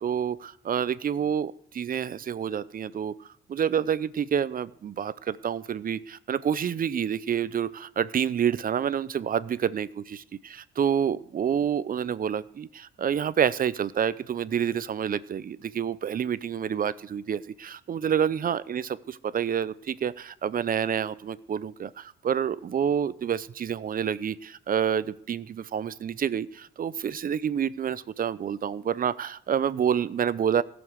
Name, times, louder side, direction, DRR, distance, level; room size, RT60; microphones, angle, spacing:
voice 1, 0.0-3.1 3.5-30.6, right 8 dB, 45° right, 17 dB, 0.6 m, -28 dB
15.5 x 7.1 x 8.0 m, 0.70 s
cardioid pair, 90°, 20 cm